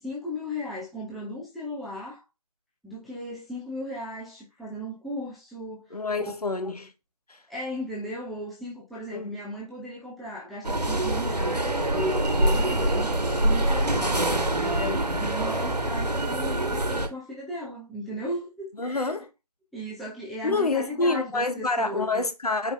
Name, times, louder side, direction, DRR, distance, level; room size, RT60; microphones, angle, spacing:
voice 1, 0.0-2.2 2.8-5.9 6.2-6.3 7.5-13.2 13.4-19.1 19.7-22.2, left 1 dB, ahead, 0.5 m, -36 dB
voice 2, 5.9-6.9 7.3-7.4 9.1-9.3 18.8-19.3 20.4-22.7, left 3 dB, 70° left, 0.8 m, -27 dB
sound 1, 10.6-17.1, right 1 dB, 80° right, 1.1 m, -25 dB
4.5 x 2.3 x 3.8 m
figure-of-eight pair, 180°, 20 cm